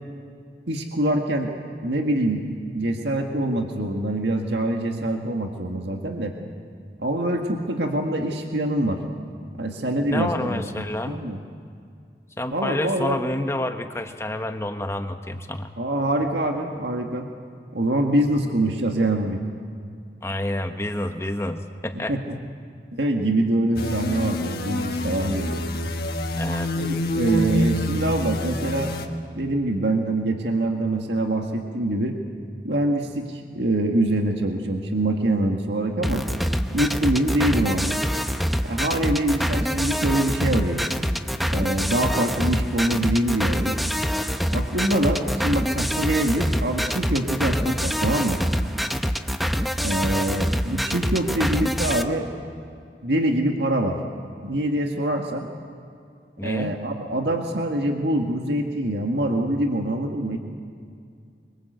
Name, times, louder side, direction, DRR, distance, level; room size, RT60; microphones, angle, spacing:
voice 1, 0.7-1.5 1.8-2.4 2.7-6.3 7.0-9.0 9.6-10.6 11.1-11.4 12.5-13.2 15.8-17.3 17.7-19.4 22.1-22.4 22.9-25.6 26.8-28.9 29.4-32.2 32.6-36.2 36.7-38.0 38.6-40.8 41.5-43.8 44.5-48.4 49.8-52.3 53.0-54.0 54.4-55.5 56.4-60.4, right 1 dB, 80° right, 3 dB, 1.8 m, -24 dB
voice 2, 10.1-11.2 12.4-15.7 20.2-22.2 26.4-26.7 56.4-56.7, left 1 dB, 15° left, 6 dB, 1.1 m, -29 dB
sound 1, 23.8-29.1, left 1 dB, 60° left, 1.6 m, -26 dB
sound 2, 36.0-52.0, equal, ahead, 0.7 m, -25 dB
25.0 x 23.5 x 8.0 m, 2.3 s
head